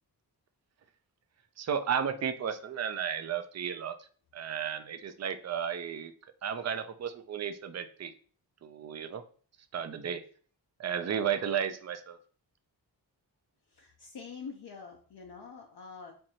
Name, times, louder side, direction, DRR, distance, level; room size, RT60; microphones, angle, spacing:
voice 1, 1.6-4.1 4.3-6.1 6.4-8.1 8.6-9.2 9.7-10.2 10.8-12.2, right 8 dB, 40° right, 9 dB, 0.5 m, -33 dB
voice 2, 13.8-16.1, left 5 dB, 65° left, 0 dB, 0.7 m, -45 dB
4.5 x 2.6 x 2.8 m, 0.43 s
wide cardioid pair, 75°, 42 cm